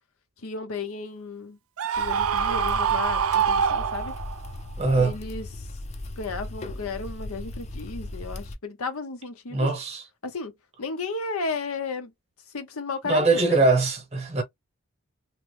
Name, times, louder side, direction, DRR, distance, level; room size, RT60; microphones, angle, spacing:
voice 1, 0.4-1.6 2.0-4.1 5.0-5.7 6.2-9.7 10.2-10.5 10.8-12.1 12.5-13.7, left 4 dB, 85° left, 0.7 m, -34 dB
Screaming, 1.8-4.5, right 7 dB, 80° right, 0.4 m, -24 dB
sound 1, 1.9-8.6, left 1 dB, 30° left, 0.4 m, -37 dB
voice 2, 4.8-5.2 9.5-10.0 13.0-14.4, right 3 dB, 30° right, 0.8 m, -22 dB
2.9 x 2.0 x 3.1 m
head